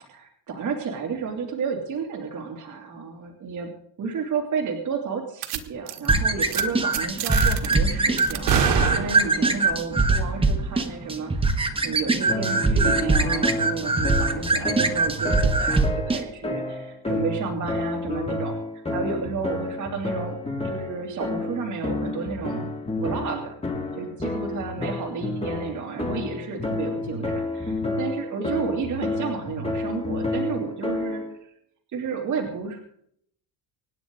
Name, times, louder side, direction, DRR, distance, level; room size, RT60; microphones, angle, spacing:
voice 1, 0.1-3.7 4.0-18.6 18.9-20.4 20.6-22.7 23.0-23.6 24.0-31.2 31.9-32.8, right 5 dB, 40° right, 0 dB, 2.9 m, -31 dB
sound 1, 5.4-5.6 5.9-6.1 6.4-6.6 6.9-7.7 8.2-9.5, right 9 dB, 70° right, 1.6 m, -26 dB
sound 2, 6.1-16.2, right 3 dB, 10° right, 1.2 m, -22 dB
sound 3, 12.3-31.3, left 2 dB, 15° left, 2.3 m, -30 dB
26.0 x 10.0 x 3.9 m, 0.66 s
cardioid pair, 160°, 44 cm